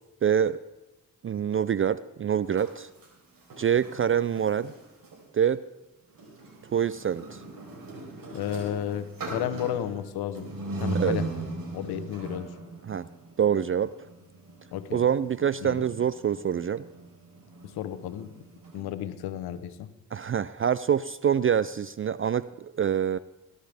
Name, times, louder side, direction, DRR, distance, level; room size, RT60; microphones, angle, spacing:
voice 1, 0.2-0.6 1.2-2.9 3.6-4.7 5.3-5.6 6.7-7.4 10.9-11.2 12.9-13.1 13.4-13.9 14.9-16.8 20.1-23.2, right 8 dB, 35° right, 17 dB, 0.4 m, -25 dB
sound 1, 2.4-5.2 6.1-18.8, right 2 dB, 65° right, 4.2 m, -39 dB
voice 2, 8.3-10.5 10.8-11.3 11.7-12.5 14.7-15.0 15.6-15.8 17.6-18.3 18.7-19.9, left 11 dB, 85° left, 12 dB, 0.9 m, -33 dB
18.5 x 11.5 x 3.5 m, 1.1 s
supercardioid pair, 50°, 37 cm